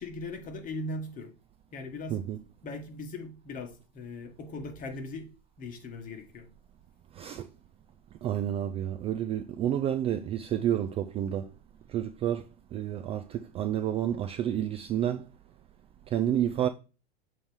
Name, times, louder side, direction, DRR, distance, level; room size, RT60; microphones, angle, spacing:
voice 1, 0.0-1.3 1.7-2.2 2.6-5.3 5.6-6.5, left 2 dB, 25° left, 1.7 m, -39 dB
voice 2, 7.1-7.5 8.2-11.5 11.9-15.3 16.1-16.7, right 10 dB, 20° right, 0.3 m, -30 dB
7.0 x 3.2 x 5.2 m
hypercardioid pair, 125°, 30 cm